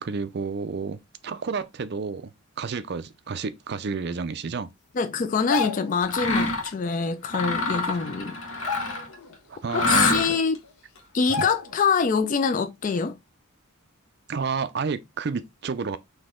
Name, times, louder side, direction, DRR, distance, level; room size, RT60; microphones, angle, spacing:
voice 1, 0.0-4.7 9.5-10.4 11.4-11.5 14.3-16.0, right 5 dB, 50° right, 0.4 m, -31 dB
voice 2, 4.9-8.4 9.7-10.6 11.1-13.2, left 5 dB, 35° left, 0.3 m, -25 dB
sound 1, 5.3-6.1 7.5-7.6 7.9-8.2 8.5-9.4 9.8-9.9 10.6-10.7 11.3-11.9 12.3-12.4, left 6 dB, 85° left, 0.8 m, -32 dB
Mechanisms, 6.0-6.7 7.2-9.1 9.7-10.6, left 2 dB, 65° left, 1.1 m, -26 dB
4.0 x 2.8 x 3.6 m
head